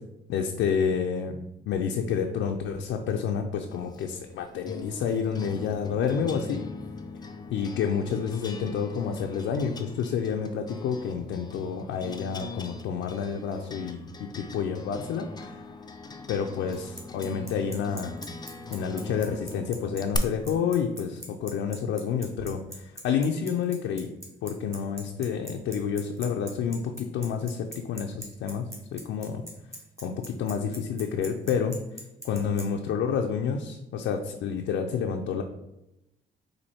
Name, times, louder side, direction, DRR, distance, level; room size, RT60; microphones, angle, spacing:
voice 1, 0.3-1.4 1.7-6.7 7.5-15.6 16.3-18.1 18.7-24.1 24.4-29.4 30.0-31.8 32.2-35.4, left 7 dB, 80° left, 3 dB, 0.4 m, -29 dB
sound 1, 3.7-20.2, left 3 dB, 20° left, 0.4 m, -41 dB
Bicycle, 16.7-32.6, equal, 15° right, 1.4 m, -41 dB
4.4 x 2.7 x 4.1 m, 0.91 s
cardioid pair, 90°, 20 cm